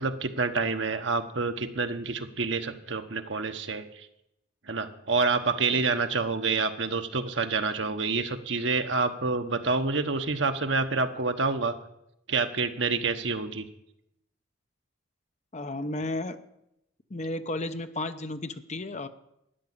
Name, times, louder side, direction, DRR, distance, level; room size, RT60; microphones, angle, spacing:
voice 1, 0.0-4.1 4.7-11.7 12.3-13.7, right 4 dB, 65° right, 7 dB, 1.2 m, -28 dB
voice 2, 15.5-16.4 17.1-19.1, left 2 dB, 35° left, 9 dB, 0.8 m, -33 dB
13.0 x 9.9 x 8.3 m, 0.83 s
head